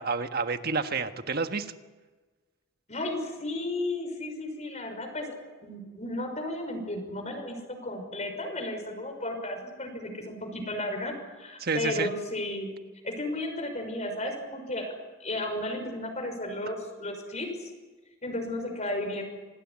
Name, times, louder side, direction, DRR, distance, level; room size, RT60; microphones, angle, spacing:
voice 1, 0.0-1.7 11.6-12.1, right 4 dB, 50° right, 8 dB, 1.5 m, -29 dB
voice 2, 2.9-12.7 13.0-14.9 15.2-17.7 18.2-19.2, left 1 dB, 35° left, 4 dB, 6.0 m, -34 dB
27.5 x 20.0 x 9.7 m, 1.3 s
head